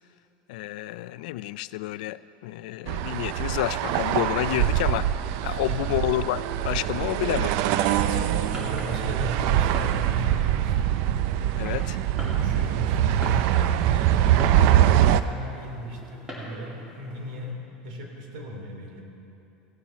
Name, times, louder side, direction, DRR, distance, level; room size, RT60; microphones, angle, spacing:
voice 1, 0.5-5.1 5.4-7.6 11.6-12.0, left 16 dB, 80° left, 16 dB, 0.3 m, -29 dB
sound 1, 2.9-15.2, right 11 dB, 60° right, 0.4 m, -23 dB
voice 2, 5.5-5.9 7.9-10.8 11.5-11.9 12.2-17.6 17.8-19.0, equal, 85° right, 1 dB, 2.7 m, -36 dB
Fireworks, 7.5-17.5, equal, 15° right, 2.5 m, -44 dB
17.0 x 7.4 x 5.7 m, 2.9 s
supercardioid pair, 135°, 4 cm